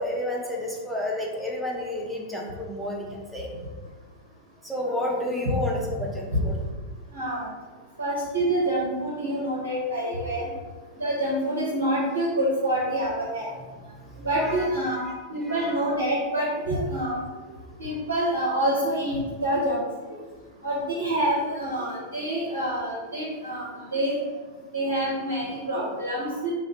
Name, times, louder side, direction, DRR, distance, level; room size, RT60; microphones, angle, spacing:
voice 1, 0.0-3.5 4.6-6.6 10.2-10.4 13.6-13.9 14.1-15.8, left 1 dB, ahead, -3 dB, 0.6 m, -31 dB
voice 2, 7.1-7.5 8.0-10.5 11.0-13.5 14.2-15.0 15.3-17.2 17.8-19.2 19.4-19.8 20.1-20.2 20.6-23.6 23.9-24.2 24.7-26.5, right 1 dB, 75° right, -5 dB, 0.5 m, -26 dB
2.7 x 2.0 x 3.0 m, 1.4 s
figure-of-eight pair, 90°, 0 cm